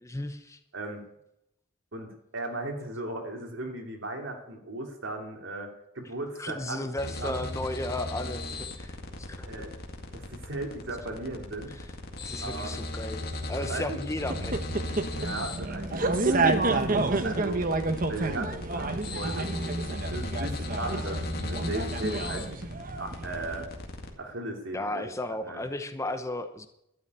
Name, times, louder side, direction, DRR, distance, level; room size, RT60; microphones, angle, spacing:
voice 1, 0.0-0.6 6.4-9.6 11.7-11.9 12.2-14.8 24.7-26.7, left 1 dB, 15° left, 8 dB, 0.8 m, -35 dB
voice 2, 1.9-6.9 7.2-7.4 9.5-9.7 10.1-11.8 12.4-12.7 13.7-14.0 15.2-17.6 18.1-19.8 20.1-22.7 23.0-23.7 24.2-25.1 25.4-25.6, right 2 dB, 70° right, 2 dB, 2.8 m, -37 dB
sound 1, 7.0-24.1, left 2 dB, 50° left, 2.0 m, -37 dB
sound 2, 14.2-23.6, right 2 dB, 45° right, 1.0 m, -29 dB
12.5 x 7.0 x 9.7 m, 0.80 s
head